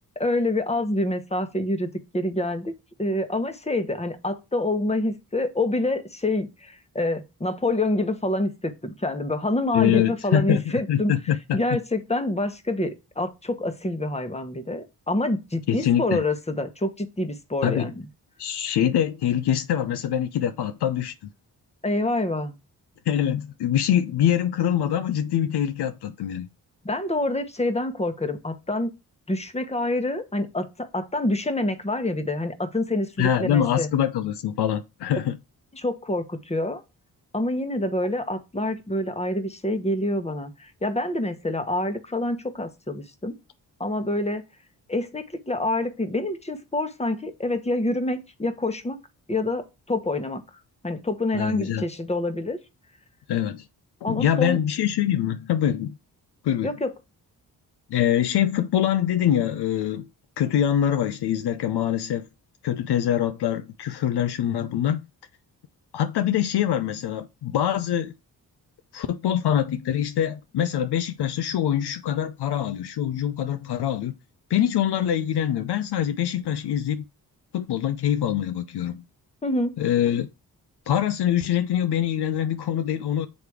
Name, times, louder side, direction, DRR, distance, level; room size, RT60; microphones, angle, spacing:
voice 1, 0.2-2.7 3.0-11.1 11.5-17.9 21.8-22.5 26.8-28.9 29.3-33.9 35.7-36.8 37.3-43.3 43.8-44.4 44.9-49.0 49.3-50.4 50.8-52.6 54.0-54.6 56.6-56.9 79.4-79.7, left 1 dB, 15° left, 1.1 m, -27 dB
voice 2, 9.7-11.6 15.7-16.2 17.6-17.9 18.4-21.1 23.1-26.5 33.2-35.4 51.3-51.8 53.3-53.6 54.1-56.0 56.4-56.7 57.9-60.1 60.4-62.3 62.6-65.0 65.9-68.1 68.9-74.1 74.5-77.0 77.5-79.0 79.8-80.3 80.9-83.3, left 10 dB, 65° left, 0.6 m, -24 dB
7.0 x 3.2 x 4.8 m
supercardioid pair, 40°, 43 cm